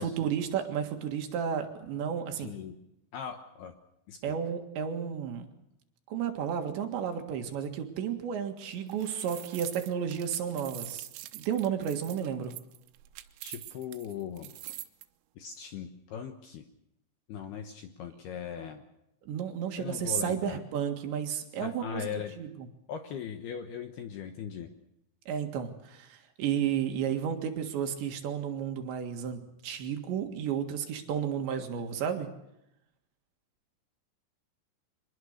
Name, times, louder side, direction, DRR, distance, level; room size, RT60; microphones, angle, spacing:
voice 1, 0.0-2.5 4.2-5.5 6.1-11.1 11.3-12.5 19.3-22.7 25.3-32.3, right 8 dB, 65° right, 5 dB, 3.8 m, -32 dB
voice 2, 2.4-2.8 3.1-3.7 4.1-4.4 13.4-14.5 15.4-16.6 17.3-18.8 19.8-20.6 21.6-22.3 22.9-24.7, left 8 dB, 70° left, 6 dB, 2.6 m, -39 dB
sound 1, 8.7-15.0, right 16 dB, 80° right, 3.6 m, -45 dB
24.5 x 21.0 x 6.6 m, 0.85 s
omnidirectional pair, 5.9 m